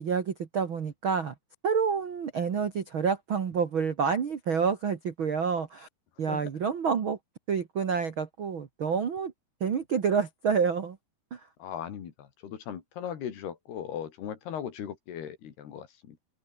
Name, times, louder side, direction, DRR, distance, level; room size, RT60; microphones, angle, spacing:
voice 1, 0.0-1.3 1.6-5.9 6.2-7.2 7.5-9.3 9.6-11.0 11.3-11.4, right 6 dB, 90° right, 1.1 m, -28 dB
voice 2, 11.6-16.2, left 9 dB, 65° left, 4.5 m, -38 dB
omnidirectional pair, 5.1 m